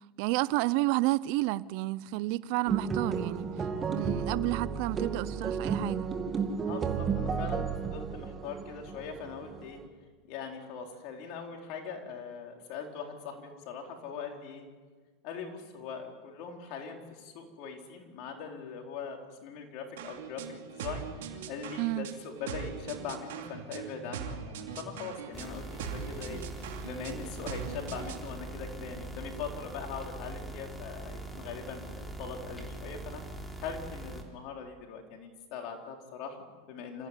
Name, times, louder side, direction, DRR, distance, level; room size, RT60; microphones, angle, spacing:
voice 1, 0.2-3.5 3.9-6.1 21.8-22.1, right 19 dB, 60° right, 0.6 m, -30 dB
sound 1, 2.7-9.9, right 5 dB, 25° right, 2.4 m, -33 dB
voice 2, 6.7-9.8 10.2-14.7 15.2-21.1 21.5-26.4 26.8-33.2 33.6-37.1, left 6 dB, 55° left, 4.3 m, -41 dB
sound 2, 20.0-28.3, right 7 dB, 75° right, 3.1 m, -41 dB
sound 3, 25.3-34.2, right 1 dB, ahead, 3.4 m, -42 dB
26.5 x 15.5 x 9.9 m
supercardioid pair, 125°, 0 cm